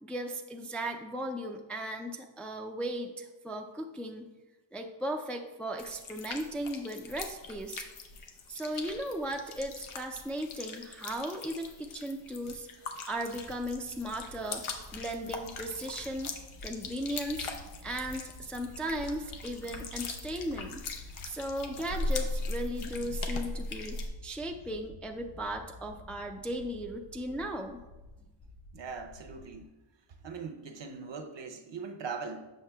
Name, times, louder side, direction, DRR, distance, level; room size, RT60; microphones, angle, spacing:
voice 1, 0.0-4.3 4.7-7.8 8.5-12.7 13.1-16.3 16.6-17.5 17.8-20.8 21.2-27.8, right 1 dB, 5° left, 3 dB, 0.3 m, -37 dB
sound 1, 5.8-24.1, left 3 dB, 85° left, 0.8 m, -40 dB
sound 2, 13.2-29.7, left 1 dB, 55° left, 1.7 m, -51 dB
voice 2, 28.7-29.7 30.2-32.5, right 5 dB, 60° right, 5 dB, 0.7 m, -40 dB
7.4 x 6.2 x 2.2 m, 1.1 s
wide cardioid pair, 90°, 49 cm